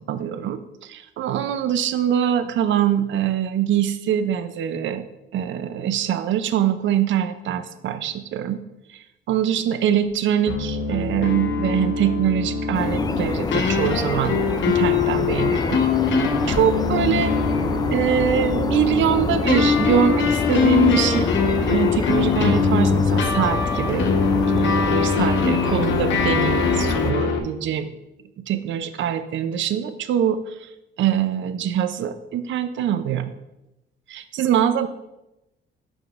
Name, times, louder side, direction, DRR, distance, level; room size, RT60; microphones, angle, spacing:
voice 1, 0.0-5.0 5.3-8.6 9.3-14.4 14.7-15.9 16.5-17.3 17.9-21.3 21.6-24.2 24.5-27.9 28.5-30.7 31.0-33.3 34.1-34.9, right 9 dB, 70° right, 11 dB, 0.6 m, -23 dB
sound 1, 10.5-27.4, left 5 dB, 70° left, 0.9 m, -22 dB
sound 2, 12.7-27.1, left 4 dB, 20° left, 0.3 m, -26 dB
9.7 x 5.1 x 2.5 m, 0.92 s
cardioid pair, 90°, 20 cm